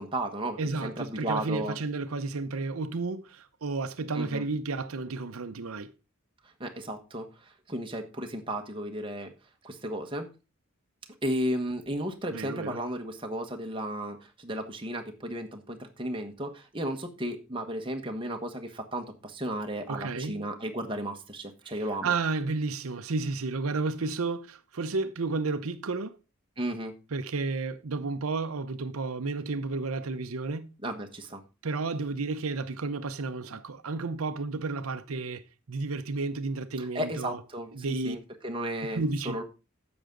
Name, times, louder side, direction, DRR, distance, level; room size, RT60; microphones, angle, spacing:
voice 1, 0.0-1.8 4.1-4.4 6.6-9.3 9.6-10.3 11.2-22.1 26.6-26.9 30.8-31.4 36.8-39.4, right 1 dB, 25° right, 1.3 m, -34 dB
voice 2, 0.6-5.9 12.3-12.8 19.9-20.4 21.6-26.2 27.1-30.7 31.6-35.4 35.7-37.4 37.7-38.2 38.9-39.4, right 3 dB, 90° right, 0.8 m, -32 dB
10.0 x 7.1 x 3.9 m
head